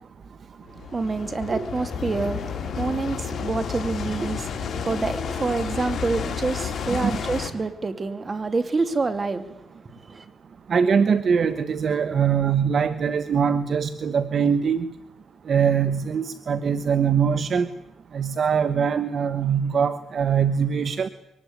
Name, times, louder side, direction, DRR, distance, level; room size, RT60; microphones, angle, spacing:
sound 1, 0.7-7.5, left 7 dB, 50° left, 4.3 m, -31 dB
voice 1, 0.9-2.5 2.8-9.5 10.1-10.2, right 3 dB, 30° right, 2.7 m, -27 dB
Motorcycle, 1.8-6.2, left 3 dB, 30° left, 6.4 m, -44 dB
voice 2, 10.7-14.9 15.5-17.7 18.1-21.1, right 7 dB, 50° right, 1.1 m, -22 dB
23.5 x 19.5 x 9.7 m
cardioid pair, 90°, 0 cm